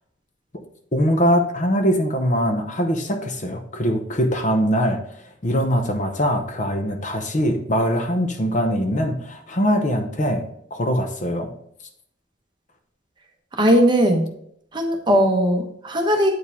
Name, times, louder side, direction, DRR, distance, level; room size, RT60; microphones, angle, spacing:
voice 1, 0.9-10.4 10.7-11.5, equal, 40° left, 5 dB, 0.8 m, -22 dB
voice 2, 13.6-14.3 14.7-16.3, equal, 25° right, 2 dB, 1.0 m, -18 dB
8.5 x 4.7 x 3.5 m, 0.69 s
head